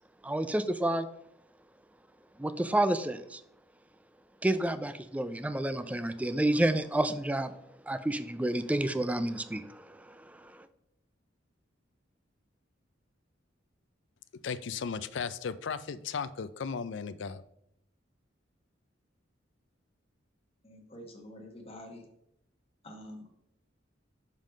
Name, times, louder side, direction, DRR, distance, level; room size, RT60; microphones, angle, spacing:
voice 1, 0.2-1.1 2.4-3.4 4.4-7.5 7.8-10.7, right 1 dB, 5° right, 0.3 m, -30 dB
voice 2, 14.4-17.4, left 6 dB, 65° left, 0.4 m, -36 dB
voice 3, 20.6-22.0 22.8-23.3, left 1 dB, 30° left, 1.3 m, -47 dB
5.5 x 5.3 x 5.1 m
head